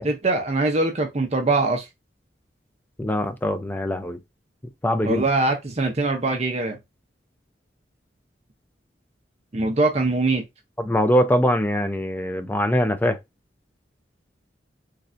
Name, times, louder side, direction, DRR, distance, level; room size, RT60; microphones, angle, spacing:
voice 1, 0.0-1.9 5.0-6.8 9.5-10.4, right 2 dB, 35° right, 0.6 m, -22 dB
voice 2, 3.0-4.2 4.8-5.2 10.8-13.2, equal, 10° left, 0.4 m, -22 dB
3.2 x 2.5 x 2.5 m
head